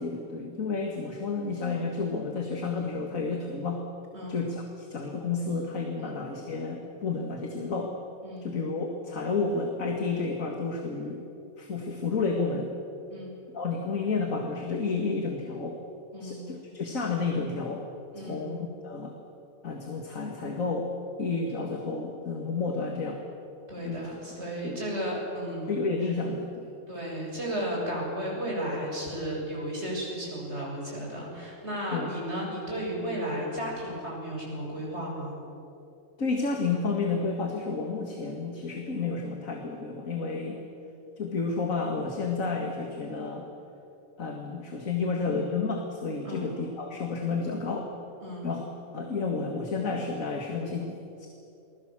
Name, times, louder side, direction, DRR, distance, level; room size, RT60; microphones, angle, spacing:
voice 1, 0.0-3.8 4.3-7.9 8.4-11.2 11.6-12.7 13.5-15.8 16.2-17.8 18.2-19.1 19.6-20.9 21.2-23.2 23.8-24.0 24.6-24.8 25.7-26.7 31.9-32.1 36.2-40.6 41.2-43.5 44.2-47.9 48.4-48.7 48.9-51.3, left 4 dB, 80° left, 2 dB, 2.4 m, -31 dB
voice 2, 16.1-16.5 18.1-18.5 23.7-25.7 26.9-35.4 46.2-46.5 48.2-48.5, equal, 55° right, -3 dB, 7.9 m, -34 dB
29.0 x 20.5 x 7.5 m, 2.8 s
omnidirectional pair, 1.4 m